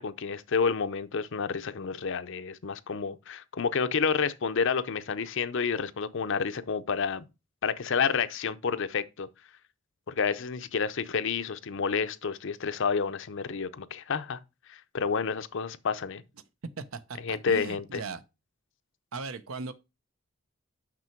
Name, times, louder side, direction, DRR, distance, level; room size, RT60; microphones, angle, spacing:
voice 1, 0.0-7.3 7.6-9.3 10.1-14.4 14.7-16.2 17.2-18.0, left 5 dB, 65° left, 0.6 m, -29 dB
voice 2, 16.8-18.2 19.1-19.7, right 4 dB, 80° right, 0.8 m, -38 dB
6.1 x 6.1 x 4.5 m
head